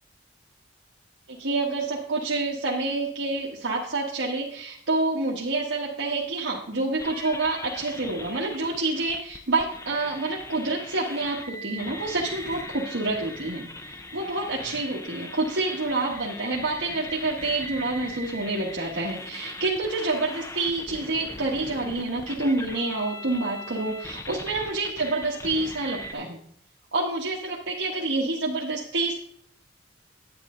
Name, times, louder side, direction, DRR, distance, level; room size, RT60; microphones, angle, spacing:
voice 1, 1.3-13.7 14.1-26.4 26.9-29.2, right 2 dB, 75° right, -4 dB, 1.4 m, -28 dB
sound 1, 7.0-26.1, left 1 dB, 15° left, 0.6 m, -40 dB
9.9 x 9.7 x 3.8 m, 0.65 s
head